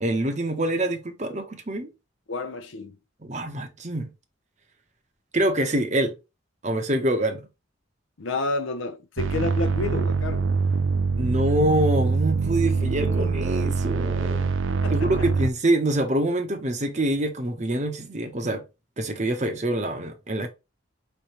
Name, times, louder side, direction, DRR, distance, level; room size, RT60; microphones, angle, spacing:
voice 1, 0.0-1.9 3.2-4.1 5.3-6.2 6.6-7.5 11.2-14.5 14.9-18.6 19.0-20.5, right 1 dB, 35° right, 0.9 m, -25 dB
voice 2, 2.3-3.0 8.2-10.5 12.6-13.4 14.7-15.3, left 3 dB, 80° left, 0.7 m, -31 dB
sound 1, 9.2-15.5, right 4 dB, 80° right, 0.5 m, -24 dB
5.3 x 3.3 x 3.0 m
head